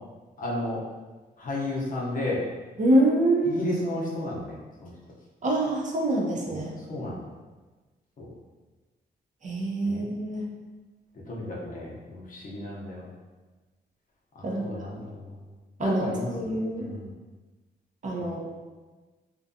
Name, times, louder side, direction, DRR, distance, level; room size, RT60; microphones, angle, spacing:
voice 1, 0.4-0.8 1.4-2.4 3.4-4.9 6.5-6.6 6.9-7.2 8.2-8.3 9.8-10.0 11.3-13.1 14.4-15.1 15.8-17.1 18.2-18.5, left 1 dB, 50° left, -4 dB, 0.6 m, -33 dB
voice 2, 2.8-3.6 5.4-6.7 9.4-10.4 14.4-14.9 15.8-16.9 18.0-18.5, right 1 dB, 45° right, -1 dB, 0.5 m, -25 dB
2.5 x 2.2 x 2.6 m, 1.3 s
cardioid pair, 100°, 18 cm